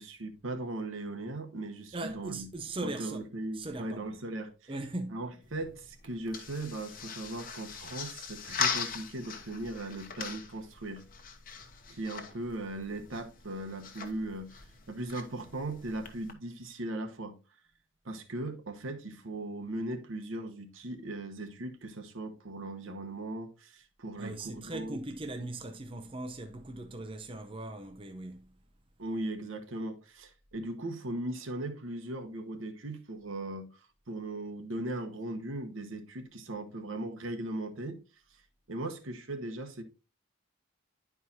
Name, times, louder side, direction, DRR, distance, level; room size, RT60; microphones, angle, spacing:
voice 1, 0.0-2.5 2.8-4.7 5.1-11.0 11.9-17.4 18.0-25.0 29.0-33.8 34.1-38.0 38.3-38.4 38.7-39.8, right 2 dB, 75° right, 1.1 m, -38 dB
voice 2, 1.9-3.3 3.5-4.2 4.7-5.3 24.2-28.5, right 2 dB, 25° right, 0.5 m, -39 dB
sound 1, 5.4-16.3, left 6 dB, 45° left, 0.9 m, -40 dB
11.0 x 4.7 x 2.7 m
head